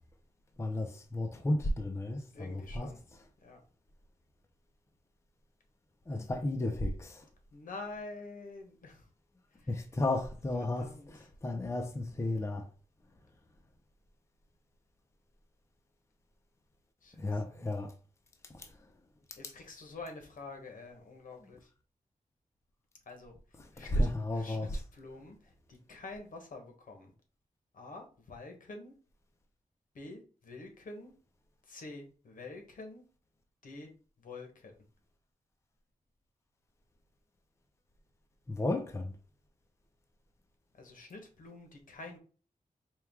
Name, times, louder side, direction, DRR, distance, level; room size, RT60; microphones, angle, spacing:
voice 1, 0.6-2.9 6.1-7.2 9.7-10.9 11.4-12.7 17.2-17.9 23.8-24.7 38.5-39.1, left 1 dB, 20° left, 0.5 m, -33 dB
voice 2, 2.3-3.0 3.4-3.6 7.5-9.1 9.5-9.9 10.8-11.3 17.0-17.5 19.4-21.7 23.1-27.1 27.7-28.9 29.9-31.1 31.6-33.0 33.6-33.9 34.2-34.7 40.7-42.2, left 3 dB, 80° left, 1.0 m, -47 dB
4.5 x 2.2 x 3.5 m
wide cardioid pair, 160°, 14 cm